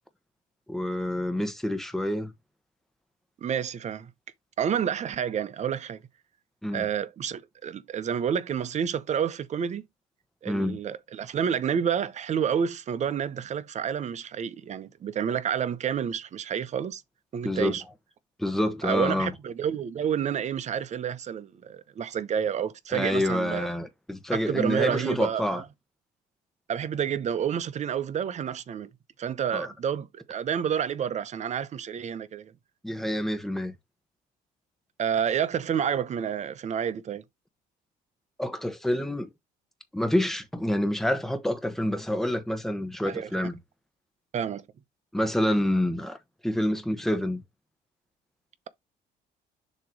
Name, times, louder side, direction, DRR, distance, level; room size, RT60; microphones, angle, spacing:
voice 1, 0.7-2.3 6.6-6.8 10.5-10.8 17.4-17.7 18.4-19.3 22.9-25.6 29.5-29.7 32.8-33.7 38.4-39.3 39.9-43.5 45.1-46.2 46.4-47.4, left 1 dB, ahead, 1.1 m, -27 dB
voice 2, 3.4-4.1 4.6-6.0 6.7-9.8 10.4-17.0 17.3-17.8 18.8-23.7 24.3-25.6 26.7-28.9 29.2-32.5 35.0-37.2 43.1-43.3 44.3-44.7, right 8 dB, 45° right, 0.8 m, -29 dB
6.6 x 3.0 x 4.9 m
cardioid pair, 110°, 17 cm